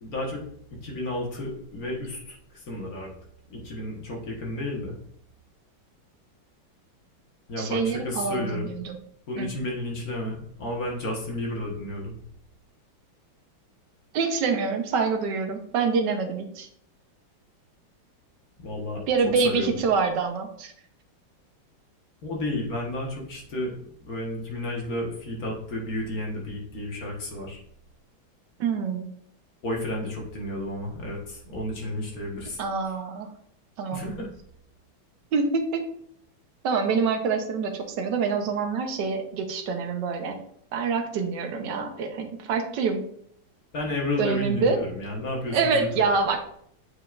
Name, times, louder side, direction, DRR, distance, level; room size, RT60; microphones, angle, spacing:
voice 1, 0.0-0.4 0.7-3.1 3.5-5.0 7.5-8.7 9.3-12.2 18.6-19.0 19.4-19.8 22.2-27.6 29.6-32.6 33.9-34.3 43.7-45.9, left 1 dB, 50° left, -1 dB, 1.6 m, -32 dB
voice 2, 7.6-9.0 9.4-9.5 14.1-16.7 19.1-20.7 28.6-29.0 32.6-33.3 33.8-34.0 35.3-35.8 36.6-40.4 40.7-43.0 44.2-44.8 45.5-46.4, right 5 dB, 65° right, 5 dB, 1.3 m, -26 dB
8.1 x 4.8 x 2.5 m, 0.68 s
omnidirectional pair, 2.3 m